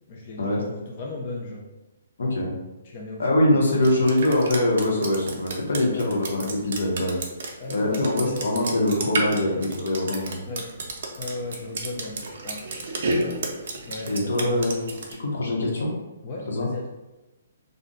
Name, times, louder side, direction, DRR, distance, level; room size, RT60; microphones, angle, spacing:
voice 1, 0.1-1.7 2.8-3.9 5.9-6.2 7.6-9.7 10.5-10.7 11.2-12.7 13.9-14.8 16.2-16.9, left 2 dB, 30° left, -1 dB, 0.3 m, -36 dB
voice 2, 2.2-2.5 3.2-7.2 7.7-10.4 14.1-15.9 16.5-16.7, left 1 dB, 80° left, -1 dB, 0.9 m, -23 dB
Drip, 3.8-15.1, right 2 dB, 50° right, 0.5 m, -32 dB
2.5 x 2.1 x 3.7 m, 1.0 s
hypercardioid pair, 175°, 0 cm